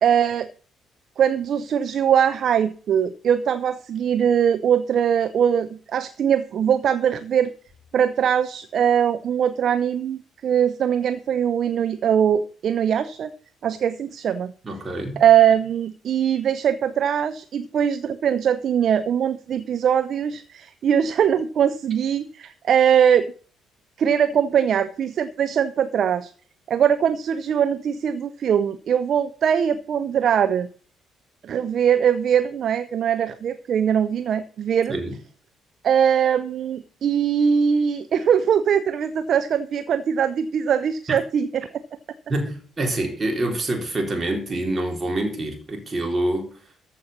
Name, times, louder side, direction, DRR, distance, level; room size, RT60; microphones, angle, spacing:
voice 1, 0.0-0.5 1.2-7.5 7.9-13.3 13.6-14.5 15.2-23.3 24.0-26.3 26.7-30.7 31.4-35.0 35.8-41.8, right 8 dB, 50° right, 0.7 m, -21 dB
voice 2, 14.6-15.2 34.9-35.1 42.3-46.5, right 1 dB, 30° right, 4.1 m, -26 dB
14.0 x 5.6 x 7.2 m
figure-of-eight pair, 45°, 0 cm